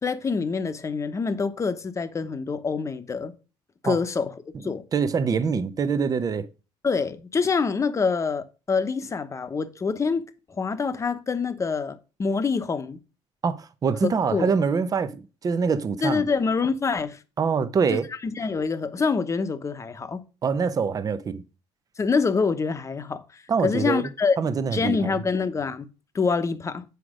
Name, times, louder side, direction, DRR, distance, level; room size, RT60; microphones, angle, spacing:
voice 1, 0.0-3.3 3.8-4.3 4.6-4.8 6.8-10.2 10.6-13.0 14.3-14.5 16.0-17.2 17.9-20.2 22.0-24.4 24.7-25.9 26.1-26.8, left 5 dB, 30° left, 1.0 m, -26 dB
voice 2, 4.9-6.5 13.4-16.3 17.4-18.1 20.4-21.4 23.5-24.1 24.4-25.1, right 5 dB, 35° right, 0.8 m, -24 dB
8.2 x 4.8 x 5.1 m
cardioid pair, 100°, 11 cm